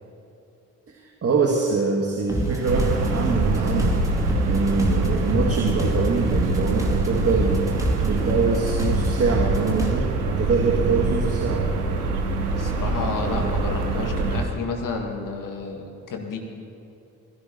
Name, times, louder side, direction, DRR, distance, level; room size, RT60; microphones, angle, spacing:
voice 1, 0.9-4.0 4.4-7.6 8.0-11.7, right 4 dB, 30° right, -1 dB, 1.6 m, -24 dB
sound 1, 2.3-9.9, right 1 dB, 5° right, 2.6 m, -28 dB
sound 2, 2.7-14.5, right 3 dB, 75° right, 1.1 m, -25 dB
voice 2, 12.5-16.4, left 3 dB, 45° left, 2 dB, 2.0 m, -30 dB
20.5 x 16.5 x 3.0 m, 2.8 s
figure-of-eight pair, 40°, 45 cm